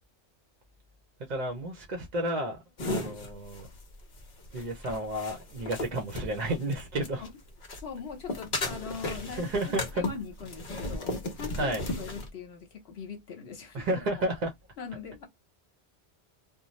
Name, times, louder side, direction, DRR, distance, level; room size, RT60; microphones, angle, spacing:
voice 1, 1.2-3.7 4.5-7.3 8.9-9.0 9.3-10.0 11.5-11.9 13.7-14.5, right 1 dB, 50° right, 0.6 m, -32 dB
sound 1, 2.8-7.3 7.6-12.3, left 2 dB, 50° left, 0.9 m, -35 dB
voice 2, 7.7-9.5 9.9-14.0 14.8-15.3, left 6 dB, 70° left, 1.1 m, -41 dB
2.6 x 2.1 x 3.0 m
omnidirectional pair, 1.1 m